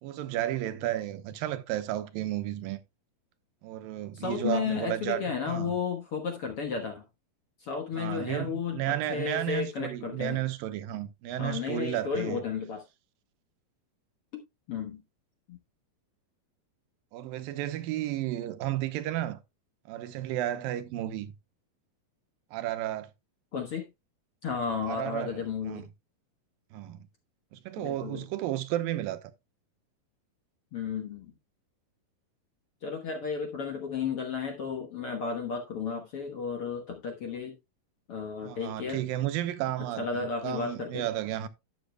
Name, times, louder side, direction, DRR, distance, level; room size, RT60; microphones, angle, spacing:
voice 1, 0.0-2.8 3.6-5.7 7.9-12.4 17.1-19.4 19.9-21.3 22.5-23.1 24.9-25.8 26.7-27.1 27.5-29.2 38.4-41.5, right 13 dB, 85° right, 2.5 m, -33 dB
voice 2, 4.1-7.0 7.6-10.4 11.4-12.8 14.7-15.0 15.5-15.6 23.5-23.9 24.4-25.8 27.8-28.2 30.7-31.3 32.8-37.5 38.1-39.0 39.8-41.0, left 6 dB, 60° left, 1.6 m, -33 dB
12.0 x 8.6 x 2.2 m
omnidirectional pair, 4.1 m